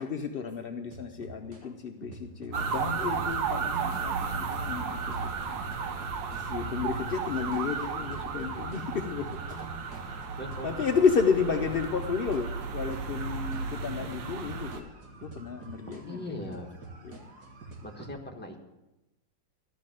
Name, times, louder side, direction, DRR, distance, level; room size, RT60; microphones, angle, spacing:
voice 1, 0.0-5.9 6.4-10.2 10.6-16.2 17.0-17.3, left 6 dB, 80° left, 5 dB, 0.5 m, -32 dB
sound 1, 0.9-1.6 2.0-6.4 6.8-18.1, right 3 dB, 60° right, 2.3 m, -46 dB
sound 2, 2.5-14.8, right 5 dB, 90° right, 1.6 m, -34 dB
voice 2, 10.1-10.7 16.1-16.7 17.8-18.6, left 1 dB, 5° left, 1 dB, 1.1 m, -40 dB
13.0 x 5.8 x 8.9 m, 0.98 s
omnidirectional pair, 2.0 m